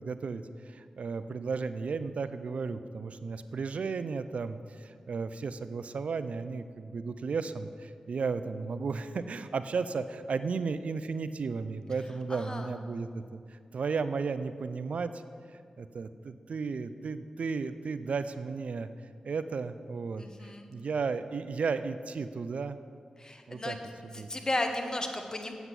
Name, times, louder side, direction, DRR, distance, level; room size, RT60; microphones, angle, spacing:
voice 1, 0.0-15.2 15.8-18.9 19.2-22.8 23.5-23.8 24.0-24.3, right 4 dB, 75° right, 12 dB, 0.4 m, -34 dB
voice 2, 12.3-12.7 20.2-20.7 23.2-23.8 24.1-25.5, left 1 dB, 30° left, 5 dB, 1.3 m, -34 dB
8.1 x 7.9 x 7.5 m, 2.2 s
cardioid pair, 55°, 2 cm